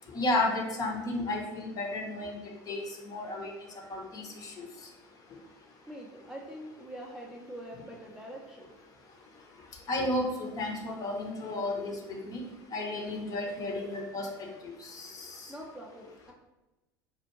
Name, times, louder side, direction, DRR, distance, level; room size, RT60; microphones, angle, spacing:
voice 1, 0.1-2.4 2.7-3.5 3.9-4.5 9.9-12.4 12.7-14.3 14.6-15.5, left 2 dB, 30° left, 1 dB, 0.7 m, -33 dB
voice 2, 5.9-8.7 15.5-16.3, equal, 5° right, -2 dB, 0.5 m, -44 dB
4.4 x 2.4 x 2.9 m, 1.0 s
figure-of-eight pair, 70°, 11 cm